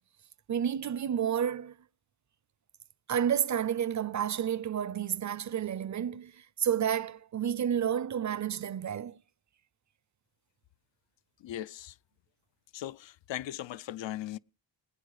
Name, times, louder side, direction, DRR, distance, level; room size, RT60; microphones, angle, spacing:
voice 1, 0.5-1.8 3.1-6.3 6.6-9.2, right 9 dB, 40° right, 0.6 m, -30 dB
voice 2, 11.4-11.9 12.7-14.4, left 13 dB, 70° left, 0.6 m, -38 dB
20.5 x 9.1 x 4.8 m
cardioid pair, 95°, 48 cm